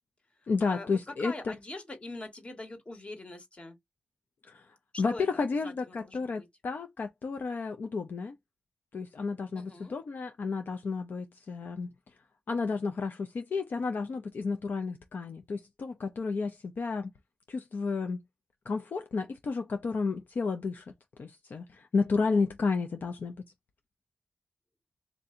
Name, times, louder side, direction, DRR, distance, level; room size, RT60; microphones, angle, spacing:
voice 1, 0.5-1.5 4.4-8.4 8.9-11.9 12.5-17.1 17.5-18.2 18.7-20.8 21.2-23.5, left 4 dB, 70° left, 0.6 m, -32 dB
voice 2, 1.2-3.7 4.9-6.5 9.6-10.0, left 2 dB, 35° left, 1.5 m, -43 dB
3.4 x 2.6 x 3.7 m
wide cardioid pair, 75°, 3 cm